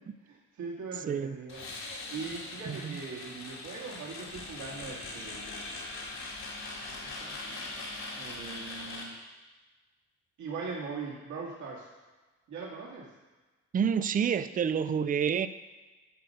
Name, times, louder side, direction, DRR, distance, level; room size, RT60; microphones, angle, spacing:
voice 1, 0.2-1.6 2.1-5.7 6.9-7.9 8.2-9.1 10.4-11.9 12.5-13.1, right 4 dB, 70° right, -4 dB, 2.3 m, -41 dB
sound 1, 1.5-9.1, left 2 dB, 70° left, 2.2 m, -41 dB
voice 2, 2.7-3.0 13.7-15.5, right 7 dB, 30° right, 13 dB, 0.4 m, -28 dB
11.5 x 3.9 x 6.6 m, 1.2 s
cardioid pair, 90°, 30 cm